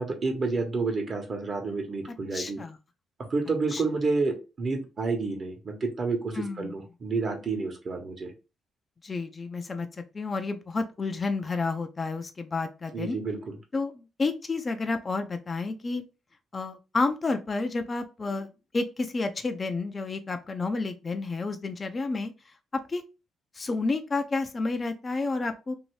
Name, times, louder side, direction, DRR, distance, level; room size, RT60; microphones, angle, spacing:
voice 1, 0.0-2.6 3.3-8.3 12.9-13.5, right 3 dB, 45° right, 4 dB, 1.0 m, -29 dB
voice 2, 2.3-2.8 3.7-3.8 6.3-6.7 9.0-9.9 10.1-13.2 13.7-16.0 16.5-22.3 22.9-23.0 23.5-25.7, left 3 dB, 30° left, 7 dB, 0.4 m, -30 dB
2.7 x 2.6 x 3.1 m, 0.29 s
cardioid pair, 90°, 0 cm